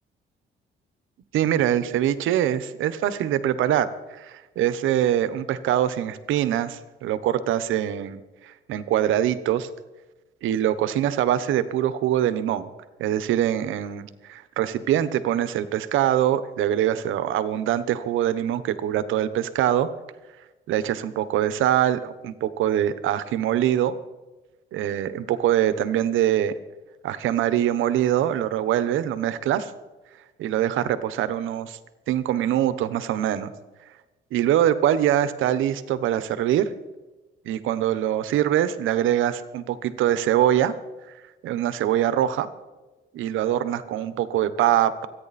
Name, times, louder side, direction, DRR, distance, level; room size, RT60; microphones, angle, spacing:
voice 1, 1.3-9.7 10.4-12.7 13.0-19.9 20.7-23.9 24.7-26.6 27.0-29.7 30.4-31.8 32.1-33.5 34.3-36.7 37.4-40.7 41.4-42.5 43.1-45.1, right 11 dB, 85° right, 14 dB, 1.1 m, -23 dB
25.0 x 9.8 x 4.2 m, 1.1 s
cardioid pair, 90°, 20 cm